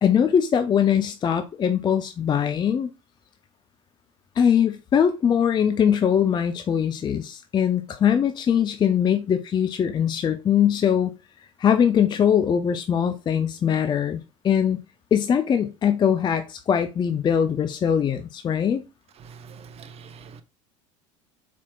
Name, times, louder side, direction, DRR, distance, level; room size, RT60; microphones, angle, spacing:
voice 1, 0.0-2.9 4.4-11.1 11.6-14.8 15.1-18.8, left 8 dB, 25° left, 0.5 m, -21 dB
voice 2, 19.2-20.4, right 6 dB, 35° right, 0.7 m, -44 dB
4.3 x 4.3 x 2.3 m
hypercardioid pair, 80°, 17 cm